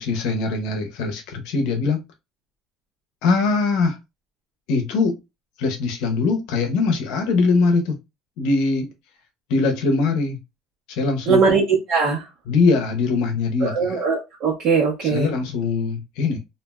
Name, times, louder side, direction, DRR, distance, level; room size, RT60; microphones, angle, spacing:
voice 1, 0.0-2.0 3.2-4.0 4.7-5.2 5.6-8.0 8.4-8.9 9.5-10.4 10.9-11.4 12.5-14.0 15.0-16.4, left 4 dB, 70° left, 0.7 m, -22 dB
voice 2, 11.3-11.6 11.9-12.2 13.6-15.3, right 5 dB, 45° right, 1.1 m, -20 dB
3.2 x 2.6 x 2.3 m
cardioid pair, 175°, 0 cm